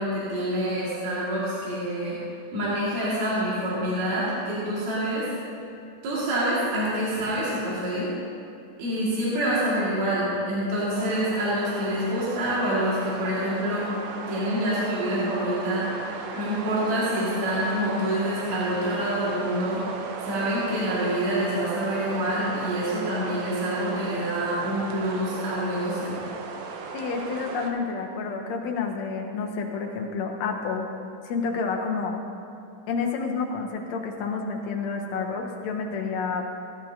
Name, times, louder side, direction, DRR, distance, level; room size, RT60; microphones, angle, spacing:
voice 1, 0.0-2.2 2.5-5.3 6.0-8.1 8.8-13.9 14.3-15.9 16.4-19.8 20.2-26.1, equal, 60° right, -9 dB, 3.5 m, -26 dB
sound 1, 10.9-27.7, right 5 dB, 85° right, 2.4 m, -36 dB
voice 2, 26.9-30.9 31.2-32.2 32.9-36.5, left 4 dB, 65° left, 1 dB, 2.1 m, -29 dB
17.0 x 11.0 x 2.8 m, 2.5 s
omnidirectional pair, 3.7 m